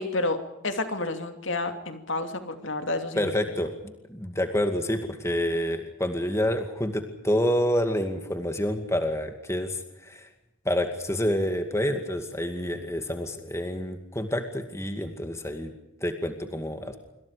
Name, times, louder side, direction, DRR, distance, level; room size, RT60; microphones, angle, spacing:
voice 1, 0.0-3.3, left 2 dB, 60° left, 7 dB, 2.8 m, -30 dB
voice 2, 3.2-3.7 4.1-10.3 10.7-15.7 16.0-17.0, equal, 15° left, 6 dB, 2.2 m, -28 dB
27.0 x 25.0 x 5.1 m, 0.89 s
head